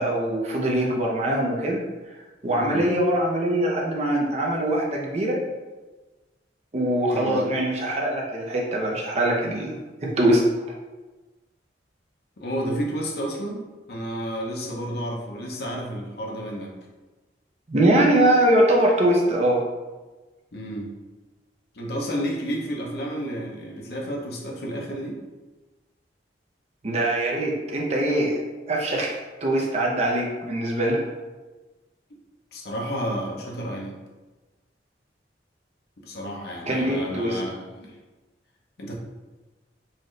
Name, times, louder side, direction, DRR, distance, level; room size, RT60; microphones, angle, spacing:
voice 1, 0.0-1.8 2.4-5.4 6.7-10.4 17.7-19.6 26.8-28.4 28.7-29.1 29.4-31.0 36.7-37.4, right 1 dB, 35° right, -2 dB, 0.6 m, -22 dB
voice 2, 2.5-2.9 7.1-7.5 12.4-13.6 13.9-16.7 20.5-20.9 21.7-25.2 32.5-34.0 36.0-38.0 38.8-38.9, equal, 60° left, -2 dB, 0.7 m, -31 dB
4.1 x 2.5 x 3.1 m, 1.2 s
head